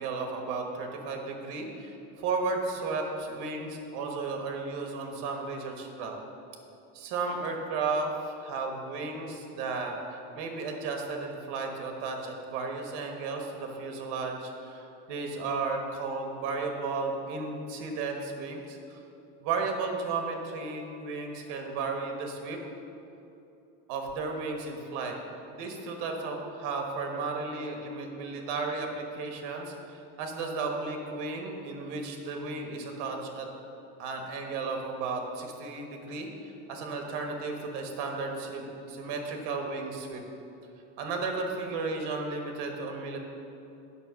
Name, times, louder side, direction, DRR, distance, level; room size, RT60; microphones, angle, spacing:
voice 1, 0.0-6.2 6.9-19.0 19.4-22.6 23.9-25.2 25.5-33.5 34.0-40.2 41.0-43.2, right 4 dB, 85° right, 2 dB, 1.4 m, -34 dB
8.4 x 6.2 x 6.2 m, 2.9 s
cardioid pair, 165°, 39 cm